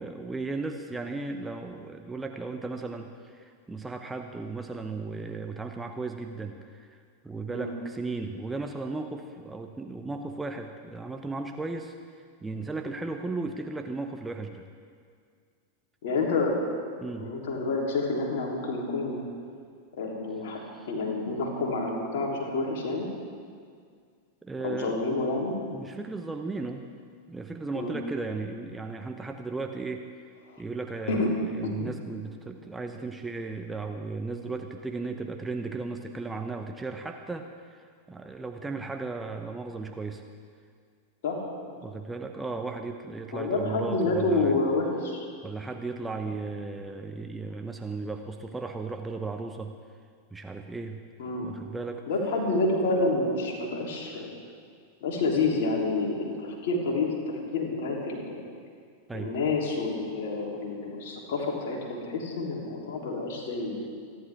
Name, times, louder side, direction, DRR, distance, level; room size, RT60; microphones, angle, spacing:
voice 1, 0.0-11.9 12.4-14.6 17.0-17.3 20.7-20.9 24.4-25.0 25.7-26.9 27.3-30.1 30.6-40.2 41.8-44.6 45.4-49.7 50.3-51.0 51.4-52.0 59.1-59.3, right 3 dB, 10° right, 4 dB, 0.8 m, -35 dB
voice 2, 16.0-16.5 17.1-19.2 20.0-20.6 20.9-23.1 24.6-25.5 27.7-27.9 30.5-30.6 31.1-31.3 31.6-31.9 41.2-41.4 43.3-45.2 51.2-51.5 52.1-54.3 55.0-58.4 59.1-63.8, left 3 dB, 55° left, -1 dB, 3.3 m, -28 dB
28.5 x 11.0 x 3.6 m, 2.1 s
figure-of-eight pair, 90°, 0 cm